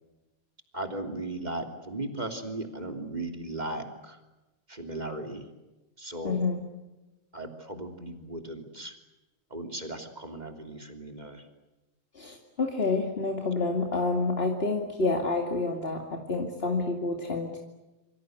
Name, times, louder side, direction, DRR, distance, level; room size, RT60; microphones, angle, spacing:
voice 1, 0.7-4.2 4.7-5.5 6.0-6.4 7.3-8.9 9.5-11.4, right 2 dB, 15° right, 5 dB, 2.7 m, -37 dB
voice 2, 6.2-6.7 12.1-17.6, left 3 dB, 20° left, 2 dB, 1.8 m, -28 dB
28.0 x 24.5 x 8.0 m, 1.1 s
omnidirectional pair, 4.1 m